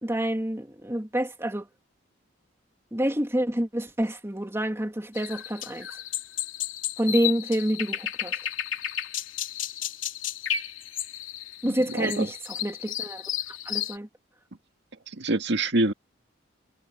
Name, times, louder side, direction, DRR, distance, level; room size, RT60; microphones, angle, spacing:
voice 1, 0.0-1.7 2.9-5.9 7.0-8.4 11.6-13.2 13.6-14.1, right 1 dB, 15° right, 2.5 m, -28 dB
sound 1, 5.2-14.0, left 10 dB, 80° left, 3.3 m, -33 dB
voice 2, 11.6-12.3 15.2-15.9, right 2 dB, 65° right, 2.0 m, -26 dB
head